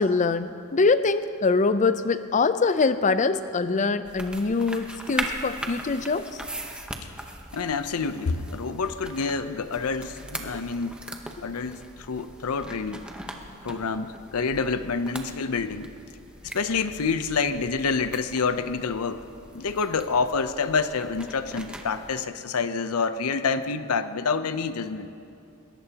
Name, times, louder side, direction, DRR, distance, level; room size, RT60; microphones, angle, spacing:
voice 1, 0.0-6.4 11.4-11.5, left 4 dB, 35° left, 12 dB, 0.5 m, -24 dB
sound 1, 4.0-22.2, right 1 dB, 5° right, 0.9 m, -40 dB
voice 2, 7.5-11.0 11.4-11.8 12.1-13.0 13.6-15.9 16.5-19.3 19.5-25.1, left 4 dB, 80° left, 11 dB, 0.6 m, -27 dB
21.5 x 18.0 x 2.9 m, 2.5 s
head